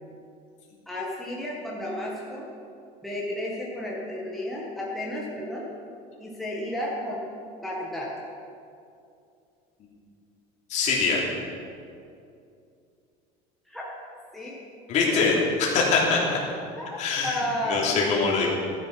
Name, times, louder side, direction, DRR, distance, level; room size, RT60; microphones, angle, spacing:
voice 1, 0.9-2.5 3.0-5.7 6.2-7.2 7.6-8.1 13.7-13.9 14.3-14.6 15.0-15.3 16.7-17.9, left 1 dB, ahead, -5 dB, 1.7 m, -32 dB
voice 2, 10.7-11.2 14.9-15.3 15.6-16.4 17.0-18.5, left 4 dB, 45° left, -3 dB, 3.2 m, -23 dB
15.0 x 10.5 x 6.1 m, 2.5 s
cardioid pair, 160°, 18 cm